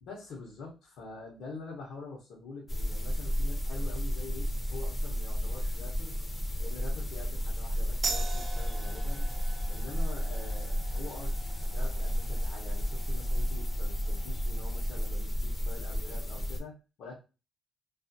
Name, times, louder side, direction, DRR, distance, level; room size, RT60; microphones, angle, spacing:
voice 1, 0.0-6.2 6.6-9.3 9.7-17.2, left 3 dB, 80° left, -4 dB, 0.7 m, -46 dB
sound 1, 2.7-16.6, equal, 20° left, 0.6 m, -32 dB
sound 2, 8.0-15.1, right 4 dB, 40° right, 0.3 m, -43 dB
2.4 x 2.1 x 2.5 m, 0.31 s
cardioid pair, 90°, 0 cm